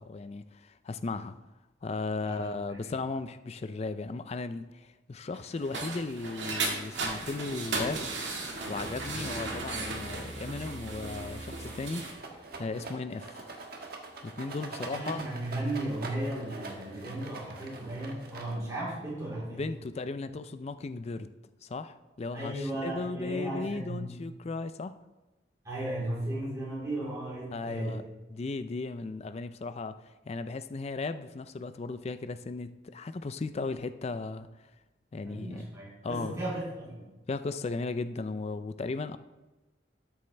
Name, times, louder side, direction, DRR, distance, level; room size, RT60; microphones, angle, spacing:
voice 1, 0.0-1.4 1.8-8.1 8.7-12.0 12.6-13.4 14.2-15.2 19.5-21.3 21.6-24.9 27.5-28.0 28.3-30.0 30.3-34.5 35.1-35.7 36.0-36.4 37.3-39.2, left 3 dB, 35° left, 12 dB, 0.4 m, -36 dB
voice 2, 2.2-2.9 9.0-9.2 14.8-19.7 22.3-24.2 25.6-28.0 35.2-37.1, right 1 dB, 20° right, -8 dB, 3.7 m, -36 dB
sound 1, 5.3-12.1, right 3 dB, 80° right, 1.9 m, -36 dB
sound 2, 8.8-14.7, right 1 dB, 35° right, 1.0 m, -46 dB
Rattle, 12.1-18.8, right 3 dB, 60° right, 1.3 m, -44 dB
12.5 x 7.1 x 3.3 m, 1.1 s
head